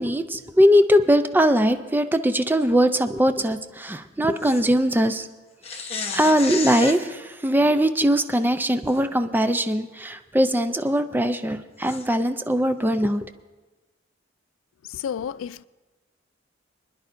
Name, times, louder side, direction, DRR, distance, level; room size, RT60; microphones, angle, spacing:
voice 1, 0.0-5.3 5.7-5.8 6.1-13.3, equal, 10° right, 0.4 m, -21 dB
sound 1, 4.4-4.6 5.6-7.0 8.9-9.0 9.5-9.6 11.9-12.0, left 5 dB, 30° left, 1.0 m, -31 dB
voice 2, 14.9-15.6, left 8 dB, 90° left, 0.3 m, -31 dB
25.5 x 10.5 x 2.6 m
head